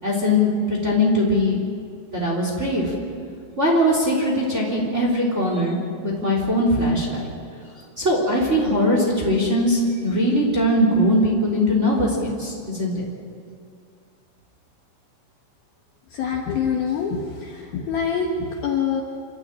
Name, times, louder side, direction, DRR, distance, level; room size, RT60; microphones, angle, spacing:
voice 1, 0.0-1.6 2.1-2.9 3.6-7.3 8.0-13.0, left 1 dB, 15° right, -2 dB, 3.1 m, -21 dB
voice 2, 16.1-19.0, left 6 dB, 65° left, 0 dB, 2.6 m, -25 dB
27.5 x 13.0 x 9.0 m, 2.3 s
omnidirectional pair, 5.6 m